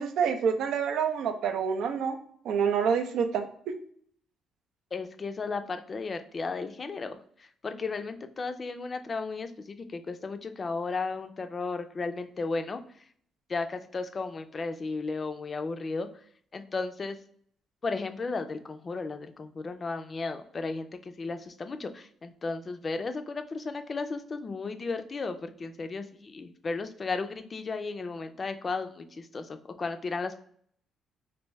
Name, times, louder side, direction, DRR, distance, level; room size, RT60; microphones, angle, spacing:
voice 1, 0.0-2.2 2.4-3.8, right 7 dB, 80° right, 7 dB, 0.4 m, -27 dB
voice 2, 4.9-12.8 13.5-16.1 16.5-17.2 17.8-30.4, left 4 dB, 35° left, 8 dB, 0.4 m, -34 dB
3.4 x 2.6 x 3.0 m, 0.62 s
cardioid pair, 90°, 0 cm